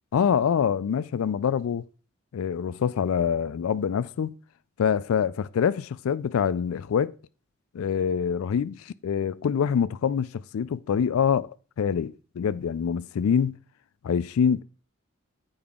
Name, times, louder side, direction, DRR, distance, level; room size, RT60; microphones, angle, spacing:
voice 1, 0.1-1.9 2.3-4.3 4.8-7.2 7.7-13.6 14.0-14.6, left 7 dB, 70° left, 0.3 m, -25 dB
8.6 x 4.8 x 3.6 m
head